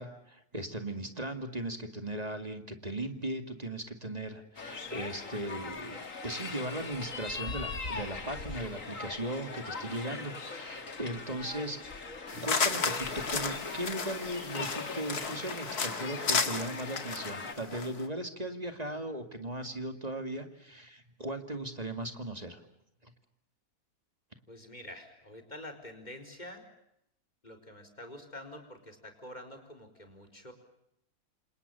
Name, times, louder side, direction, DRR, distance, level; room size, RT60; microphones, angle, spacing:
voice 1, 0.0-11.8 12.3-22.6 23.0-23.1, right 1 dB, 25° right, 7 dB, 2.4 m, -38 dB
sound 1, 4.6-17.5, left 4 dB, 60° left, 2.5 m, -41 dB
sound 2, 12.3-18.1, left 5 dB, 85° left, 2.6 m, -33 dB
voice 2, 24.5-26.6 27.4-30.5, left 1 dB, 30° left, 5 dB, 4.6 m, -47 dB
28.0 x 28.0 x 6.9 m, 0.79 s
omnidirectional pair, 1.6 m